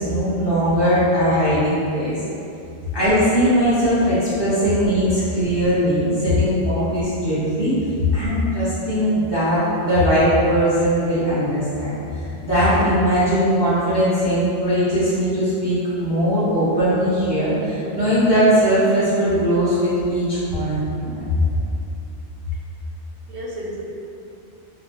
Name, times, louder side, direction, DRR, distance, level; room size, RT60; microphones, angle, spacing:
voice 1, 0.0-2.1 2.9-7.7 8.1-11.9 12.4-21.3, equal, 25° left, -13 dB, 1.0 m, -19 dB
voice 2, 23.3-23.8, left 7 dB, 85° right, -4 dB, 0.9 m, -25 dB
3.0 x 2.1 x 2.8 m, 2.7 s
omnidirectional pair, 1.1 m